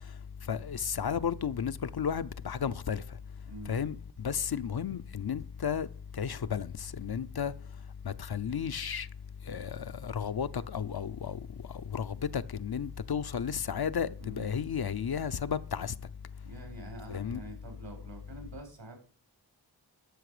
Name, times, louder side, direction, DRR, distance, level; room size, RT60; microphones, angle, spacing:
voice 1, 0.5-3.0 3.7-5.9 6.2-7.5 8.0-9.1 9.5-11.4 11.9-15.9 17.1-17.4, left 7 dB, 60° left, 0.6 m, -33 dB
voice 2, 16.4-19.0, right 1 dB, 80° right, 4.4 m, -46 dB
13.0 x 5.9 x 4.9 m
wide cardioid pair, 70°, 43 cm